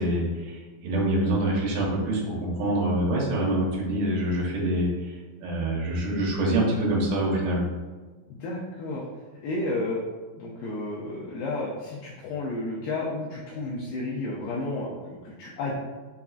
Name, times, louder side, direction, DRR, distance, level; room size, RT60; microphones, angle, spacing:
voice 1, 0.0-4.9 5.4-7.6, right 1 dB, 80° right, -4 dB, 2.9 m, -25 dB
voice 2, 8.3-9.1 9.4-10.0 10.4-15.7, left 2 dB, 90° left, -4 dB, 2.1 m, -32 dB
6.8 x 2.4 x 2.3 m, 1.3 s
omnidirectional pair, 4.8 m